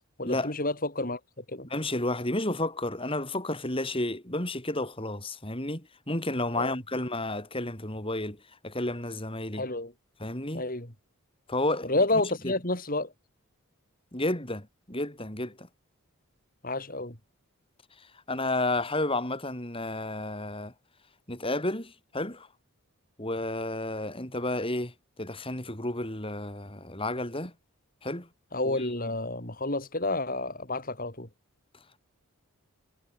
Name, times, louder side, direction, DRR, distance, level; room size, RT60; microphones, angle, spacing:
voice 1, 0.2-1.7 6.6-6.7 9.5-9.9 10.5-10.9 11.8-13.1 16.6-17.2 28.5-31.3, left 2 dB, 40° left, 4.4 m, -30 dB
voice 2, 1.6-9.6 10.2-10.6 11.5-11.9 12.4-12.5 14.1-15.7 18.0-20.7 21.3-22.5 23.2-27.5 28.0-28.3 28.6-28.9, left 2 dB, 25° left, 5.4 m, -31 dB
head